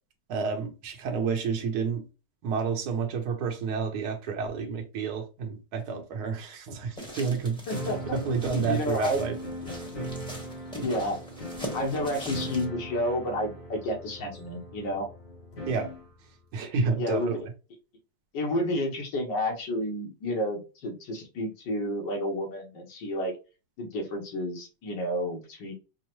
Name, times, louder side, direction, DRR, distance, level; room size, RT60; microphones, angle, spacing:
voice 1, 0.3-2.0 2.4-7.6 8.1-9.4 15.7-15.9 16.5-17.4, right 5 dB, 65° right, 1.3 m, -30 dB
sound 1, 7.0-12.6, equal, 5° left, 0.9 m, -42 dB
voice 2, 7.7-8.0 8.5-9.2 10.8-11.2 11.7-15.1 17.0-17.5 18.3-23.3 23.8-25.7, left 1 dB, 75° left, 1.7 m, -30 dB
sound 2, 7.7-16.1, equal, 60° left, 2.1 m, -39 dB
5.4 x 2.1 x 3.0 m
omnidirectional pair, 1.9 m